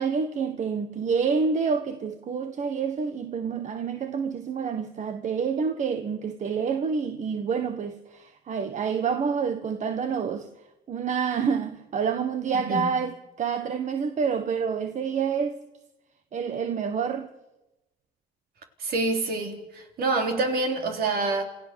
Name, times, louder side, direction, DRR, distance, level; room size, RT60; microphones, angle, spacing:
voice 1, 0.0-10.5 10.9-15.6 16.3-17.3, right 6 dB, 45° right, 1.4 m, -28 dB
voice 2, 12.5-12.9 18.8-21.4, right 3 dB, 65° right, 4.0 m, -27 dB
28.0 x 16.0 x 7.1 m
cardioid pair, 110°, 17 cm